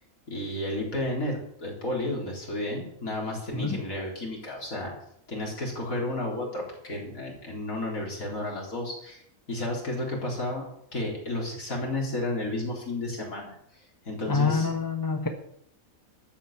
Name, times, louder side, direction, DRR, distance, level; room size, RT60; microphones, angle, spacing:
voice 1, 0.3-4.9 5.3-9.2 9.5-10.7 10.9-13.5 14.1-14.7, left 1 dB, 70° left, -2 dB, 4.4 m, -32 dB
voice 2, 14.3-15.3, left 4 dB, 15° left, 4 dB, 1.1 m, -26 dB
13.0 x 7.8 x 7.5 m, 0.72 s
omnidirectional pair, 1.5 m